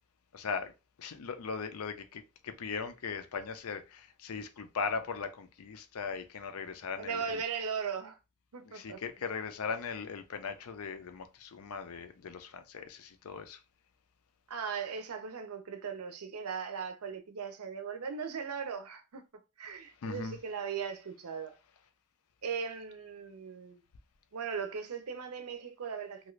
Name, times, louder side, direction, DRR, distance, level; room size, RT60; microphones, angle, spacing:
voice 1, 0.3-0.7 1.0-7.2 8.7-13.6 20.0-20.3, left 5 dB, 75° left, 0.5 m, -39 dB
voice 2, 7.0-8.2 8.5-9.0 14.5-21.6 22.4-23.8 24.3-26.3, right 6 dB, 80° right, 0.5 m, -38 dB
2.6 x 2.4 x 3.0 m
head